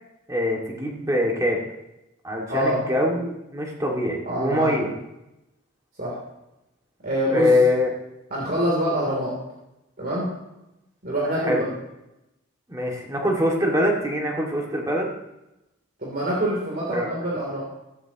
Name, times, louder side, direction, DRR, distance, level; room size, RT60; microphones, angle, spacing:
voice 1, 0.3-1.6 2.2-4.9 7.3-7.9 11.4-11.7 12.7-15.1 16.9-17.1, left 1 dB, 15° right, -1 dB, 2.2 m, -23 dB
voice 2, 2.5-2.8 4.2-4.7 6.0-6.1 7.0-7.5 8.3-9.3 10.0-10.3 11.0-11.6 16.0-17.6, equal, 45° right, -4 dB, 3.3 m, -25 dB
15.5 x 14.0 x 3.0 m, 0.92 s
head